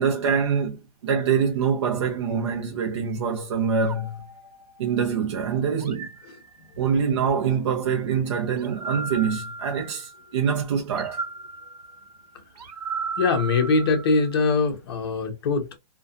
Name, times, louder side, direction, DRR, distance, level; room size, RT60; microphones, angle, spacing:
voice 1, 0.0-4.2 4.8-6.1 6.8-11.2, right 6 dB, 45° right, 0.5 m, -25 dB
sound 1, 3.8-5.2 5.8-7.1 8.6-10.3 10.9-14.5, right 4 dB, 85° right, 1.0 m, -36 dB
voice 2, 13.2-15.8, left 4 dB, 40° left, 0.7 m, -22 dB
2.4 x 2.2 x 2.6 m
hypercardioid pair, 170°, 20 cm